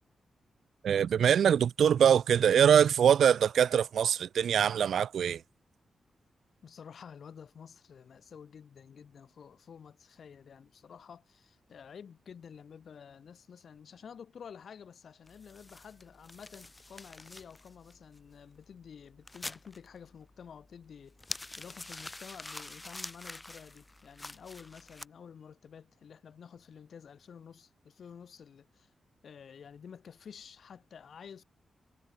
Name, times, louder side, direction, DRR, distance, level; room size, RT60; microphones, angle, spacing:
voice 1, 0.8-5.4, right 8 dB, 80° right, 0.7 m, -23 dB
voice 2, 6.6-28.9 29.2-31.4, left 7 dB, 60° left, 3.0 m, -51 dB
sound 1, 15.3-25.1, left 2 dB, 15° left, 1.1 m, -47 dB
wide cardioid pair, 155°, 0 cm